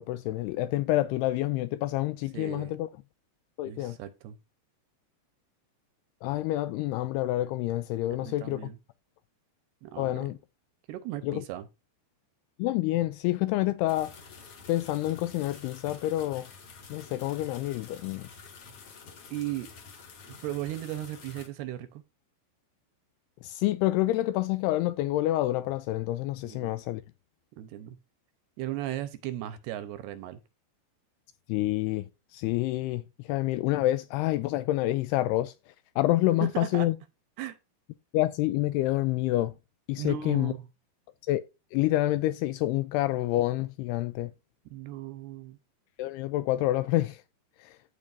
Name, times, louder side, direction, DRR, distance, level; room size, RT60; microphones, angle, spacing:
voice 1, 0.0-2.9 3.6-4.0 6.2-8.6 10.0-10.4 11.2-11.4 12.6-14.1 14.7-16.5 16.9-18.3 23.4-27.0 31.5-33.0 33.3-35.5 36.0-36.9 38.1-39.5 39.9-40.5 41.3-41.4 41.7-44.3 46.0-47.2 47.6-47.7, left 16 dB, 85° left, 2.3 m, -28 dB
voice 2, 2.3-2.8 3.7-4.4 8.2-8.8 9.8-10.4 10.9-11.7 19.3-19.7 20.3-22.0 26.4-26.7 27.6-28.0 28.6-30.4 36.4-36.9 37.4-37.6 40.0-40.7 44.7-45.6, right 13 dB, 80° right, 2.6 m, -36 dB
sound 1, 13.9-21.5, left 5 dB, 50° left, 1.9 m, -49 dB
15.0 x 5.2 x 2.6 m
omnidirectional pair, 5.0 m